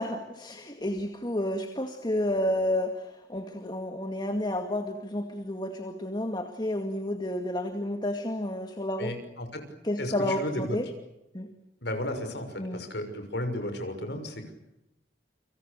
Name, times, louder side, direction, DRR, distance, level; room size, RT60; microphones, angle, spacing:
voice 1, 0.0-9.1 9.8-10.9 11.3-11.5 12.6-12.8, left 1 dB, 25° left, 6 dB, 2.2 m, -31 dB
voice 2, 9.0-9.6 10.0-10.8 11.8-14.5, left 1 dB, 70° left, 7 dB, 6.2 m, -34 dB
29.5 x 26.0 x 6.7 m, 0.88 s
head